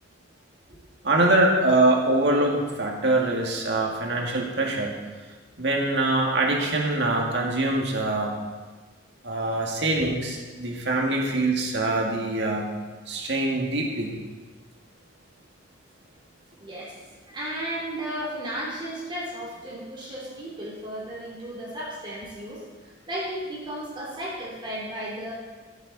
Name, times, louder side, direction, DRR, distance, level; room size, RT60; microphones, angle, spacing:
voice 1, 1.0-5.0 5.6-8.3 9.2-12.7 13.1-14.2, right 2 dB, 60° right, -1 dB, 1.9 m, -24 dB
voice 2, 16.6-16.9 17.3-22.6 23.1-25.3, right 1 dB, 25° right, -6 dB, 2.9 m, -34 dB
15.0 x 8.2 x 4.0 m, 1.3 s
head